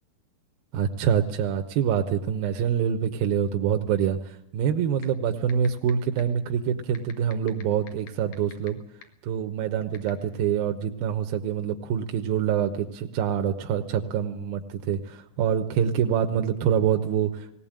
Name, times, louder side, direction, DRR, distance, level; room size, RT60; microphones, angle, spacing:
voice 1, 0.7-8.8 9.2-17.6, right 8 dB, 80° right, 5 dB, 2.8 m, -26 dB
sound 1, 5.0-5.1 5.5-5.9 6.2-6.3 6.9-8.7 9.0-9.1 9.9-10.1, left 10 dB, 60° left, 2.9 m, -42 dB
19.0 x 18.5 x 8.8 m, 0.86 s
omnidirectional pair, 4.3 m